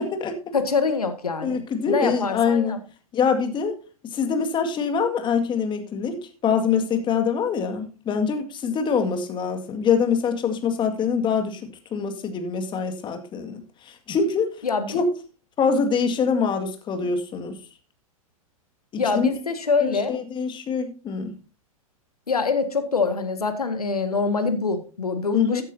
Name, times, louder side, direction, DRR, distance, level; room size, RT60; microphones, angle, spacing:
voice 1, 0.0-0.4 1.4-2.8 3.1-3.8 4.1-14.5 14.9-15.1 15.6-17.6 18.9-19.3 19.8-21.4 25.3-25.6, left 6 dB, 25° left, 6 dB, 2.0 m, -24 dB
voice 2, 0.5-2.8 14.6-15.0 19.0-20.2 22.3-25.6, left 4 dB, 85° left, 8 dB, 1.9 m, -25 dB
14.5 x 9.8 x 2.8 m, 0.34 s
figure-of-eight pair, 100°, 19 cm